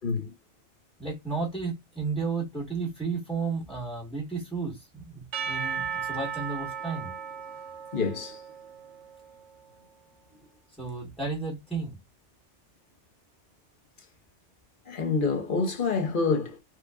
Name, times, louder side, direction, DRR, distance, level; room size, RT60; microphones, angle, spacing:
voice 1, 0.0-0.3 7.9-8.4 14.8-16.6, left 4 dB, 50° left, 1.1 m, -27 dB
voice 2, 1.0-7.1 10.8-12.0, right 4 dB, ahead, 1.2 m, -33 dB
Percussion / Church bell, 5.3-9.5, right 7 dB, 80° right, 1.0 m, -36 dB
4.6 x 2.4 x 2.3 m
omnidirectional pair, 1.2 m